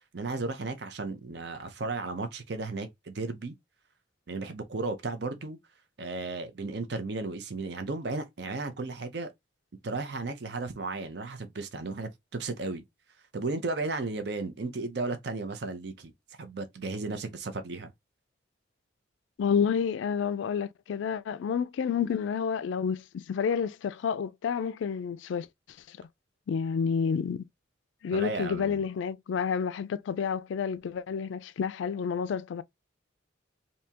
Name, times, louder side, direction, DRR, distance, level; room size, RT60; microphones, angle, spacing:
voice 1, 0.1-3.5 4.3-5.6 6.0-9.3 9.8-12.8 13.3-16.1 16.4-17.9 28.1-28.8, right 3 dB, 55° right, 0.6 m, -34 dB
voice 2, 19.4-25.5 26.5-27.4 28.0-32.6, left 6 dB, 75° left, 0.3 m, -29 dB
3.4 x 2.7 x 2.8 m
head